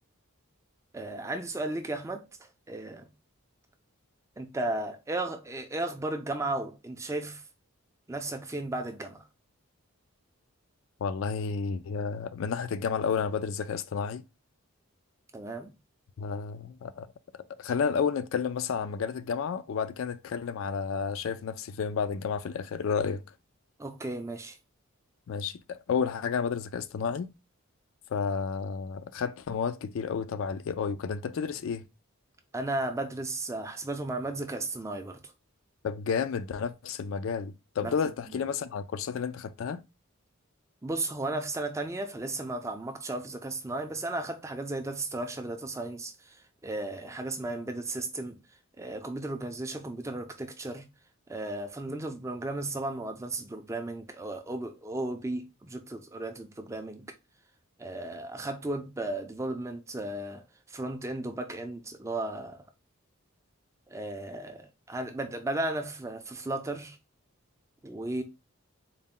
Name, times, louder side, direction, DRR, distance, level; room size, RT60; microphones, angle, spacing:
voice 1, 0.9-2.3 2.7-3.1 4.4-7.4 8.1-9.3 15.3-15.7 23.8-24.6 32.5-35.3 37.8-37.9 40.8-48.4 48.8-50.9 51.3-57.1 57.8-62.6 63.9-67.0 67.8-68.2, right 2 dB, 15° right, 0.3 m, -35 dB
voice 2, 11.0-14.2 16.2-17.1 17.3-23.2 25.3-27.3 28.1-31.8 35.8-39.8, left 6 dB, 65° left, 0.3 m, -31 dB
4.0 x 2.1 x 3.6 m
head